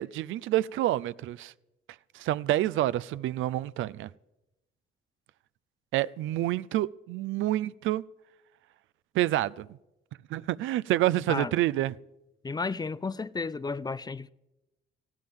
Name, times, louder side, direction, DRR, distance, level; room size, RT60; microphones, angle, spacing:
voice 1, 0.0-1.5 2.1-4.1 5.9-8.0 9.1-9.8 10.3-11.9, right 14 dB, 80° right, 0.5 m, -28 dB
voice 2, 12.4-14.3, left 4 dB, 20° left, 0.4 m, -33 dB
19.5 x 15.5 x 3.6 m
cardioid pair, 90°, 20 cm